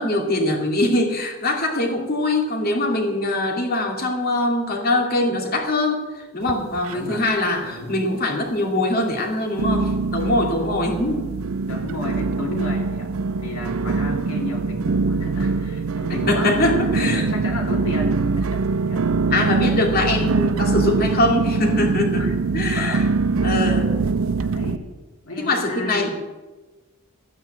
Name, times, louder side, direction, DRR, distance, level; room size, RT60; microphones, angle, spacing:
voice 1, 0.0-11.3 16.3-17.3 19.3-22.2 22.5-23.1 23.4-23.9 25.4-26.1, left 1 dB, 45° left, 1 dB, 2.6 m, -22 dB
sound 1, 6.4-7.4 7.6-8.3 8.8-8.9 9.6-24.8, right 4 dB, 65° right, 0.5 m, -23 dB
voice 2, 6.9-7.2 7.6-8.0 11.7-16.5 16.9-19.1 22.1-22.3 22.7-23.8 24.4-24.8 25.2-26.1, left 1 dB, 70° left, 0 dB, 3.0 m, -33 dB
13.5 x 9.3 x 8.0 m, 1.2 s
head